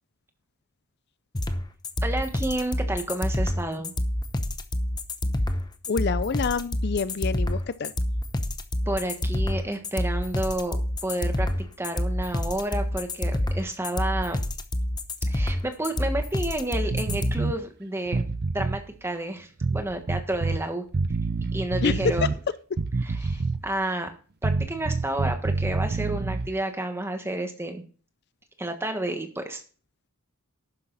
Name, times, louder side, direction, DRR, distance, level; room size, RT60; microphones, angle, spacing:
sound 1, 1.3-17.3, left 1 dB, 20° left, 0.8 m, -27 dB
voice 1, 2.0-3.9 8.9-10.8 11.0-14.4 15.3-18.3 18.5-20.8 21.5-22.4 23.0-24.1 24.4-27.8 28.6-29.6, right 1 dB, 10° right, 5 dB, 1.4 m, -30 dB
voice 2, 5.9-7.9 21.8-21.9, left 5 dB, 45° left, 15 dB, 0.4 m, -27 dB
sound 2, 16.9-17.6 18.1-18.8 19.6-20.6 20.9-22.4 22.8-23.7 24.4-26.5, right 3 dB, 45° right, 0.5 m, -27 dB
12.0 x 9.9 x 4.0 m, 0.40 s
head